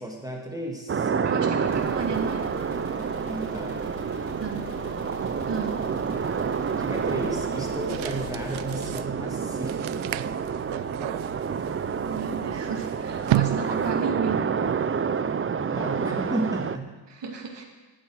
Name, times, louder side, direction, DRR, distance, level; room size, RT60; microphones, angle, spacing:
voice 1, 0.0-1.1 3.2-4.2 6.8-10.2 15.7-16.9, right 1 dB, 10° right, -1 dB, 2.1 m, -33 dB
sound 1, 0.9-16.8, right 6 dB, 30° right, 0.5 m, -29 dB
voice 2, 1.2-2.5 4.4-4.7 5.5-5.8 12.1-14.4 17.1-17.7, right 5 dB, 60° right, 2 dB, 2.4 m, -33 dB
sound 2, 1.6-9.0, left 6 dB, 70° left, 1.7 m, -43 dB
sound 3, 7.9-14.2, right 15 dB, 80° right, 0.5 m, -32 dB
15.5 x 11.5 x 4.8 m, 1.3 s
wide cardioid pair, 125°, 47 cm